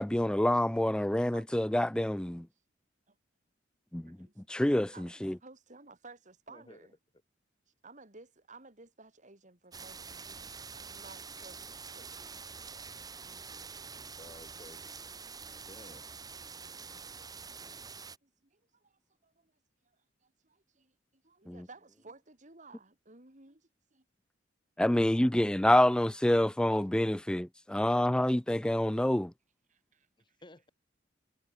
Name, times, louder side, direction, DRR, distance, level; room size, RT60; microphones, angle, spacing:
voice 1, 0.0-2.5 3.9-4.1 4.5-5.3 21.5-21.6 24.8-29.3, left 1 dB, 5° left, 0.3 m, -27 dB
voice 2, 3.9-4.3 4.9-6.9 7.8-12.1 18.2-19.5 19.8-20.0 20.2-24.0 29.7-30.1, right 3 dB, 40° right, 3.3 m, -56 dB
voice 3, 6.5-6.8 14.2-14.8 15.7-16.0 30.2-30.7, left 1 dB, 25° left, 3.0 m, -53 dB
sound 1, 9.7-18.2, right 5 dB, 20° right, 1.2 m, -46 dB
head